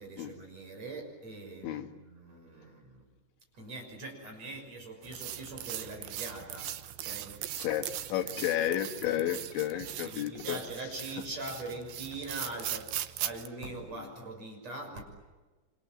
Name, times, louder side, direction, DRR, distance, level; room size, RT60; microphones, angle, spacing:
voice 1, 0.0-3.0 3.6-7.4 8.4-8.5 9.0-13.0 13.2-15.0, right 2 dB, 35° right, 3 dB, 7.2 m, -43 dB
sound 1, 5.0-13.5, right 12 dB, 70° right, 2.6 m, -40 dB
voice 2, 7.6-10.6, left 11 dB, 85° left, 6 dB, 3.8 m, -32 dB
29.5 x 26.0 x 7.5 m, 1.3 s
omnidirectional pair, 5.1 m